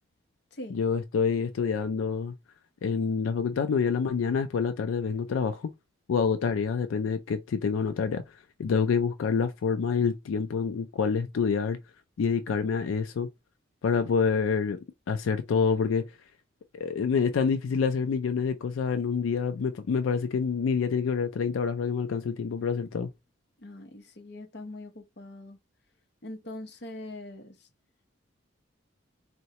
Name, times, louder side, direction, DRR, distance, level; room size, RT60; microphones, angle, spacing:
voice 1, 0.7-2.3 2.8-5.7 6.1-8.2 8.6-11.8 12.2-13.3 13.8-14.8 15.1-16.0 16.7-23.1, left 5 dB, 90° left, 0.4 m, -27 dB
voice 2, 23.6-25.6 26.2-27.5, left 1 dB, 60° left, 0.7 m, -42 dB
3.8 x 2.1 x 2.8 m
head